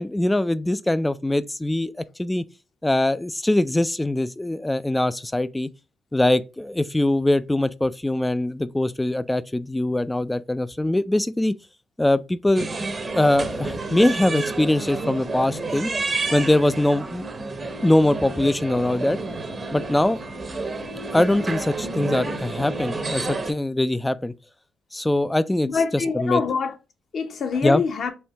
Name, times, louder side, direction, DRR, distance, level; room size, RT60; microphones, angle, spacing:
voice 1, 0.0-2.4 2.8-5.7 6.1-11.5 12.0-12.7 13.2-15.9 16.3-17.2 17.8-19.2 19.7-20.2 21.1-24.3 24.9-26.4 27.6-27.8, left 1 dB, 10° left, 0.4 m, -22 dB
sound 1, 12.6-23.5, right 3 dB, 30° right, 0.8 m, -30 dB
voice 2, 25.6-26.8 27.1-28.1, left 5 dB, 55° left, 0.9 m, -24 dB
4.4 x 2.8 x 3.3 m
cardioid pair, 90°, 0 cm